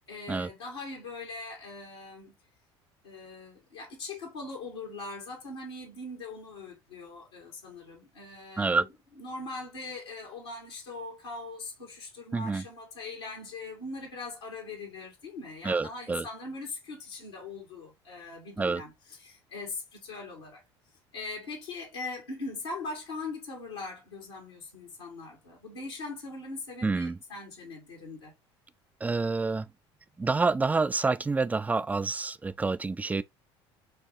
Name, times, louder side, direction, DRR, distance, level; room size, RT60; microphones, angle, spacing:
voice 1, 0.0-2.4 3.0-8.9 9.2-20.6 21.1-28.3, left 3 dB, 85° left, 1.8 m, -41 dB
voice 2, 12.3-12.6 15.6-16.3 18.6-18.8 26.8-27.2 29.0-29.7 30.2-33.2, right 3 dB, 10° right, 0.3 m, -28 dB
6.3 x 2.3 x 2.7 m
hypercardioid pair, 65°, 14 cm